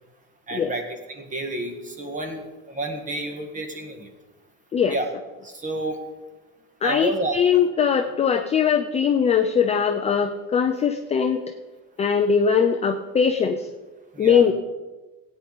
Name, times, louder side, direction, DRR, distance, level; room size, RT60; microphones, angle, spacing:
voice 1, 0.5-4.1 4.9-5.1 5.4-6.0 6.8-7.4 14.1-14.5, right 2 dB, 20° right, 5 dB, 1.4 m, -30 dB
voice 2, 6.8-11.4 12.0-13.7 14.2-14.5, left 7 dB, 20° left, 6 dB, 0.4 m, -21 dB
16.0 x 9.1 x 3.9 m, 1.2 s
cardioid pair, 150°, 39 cm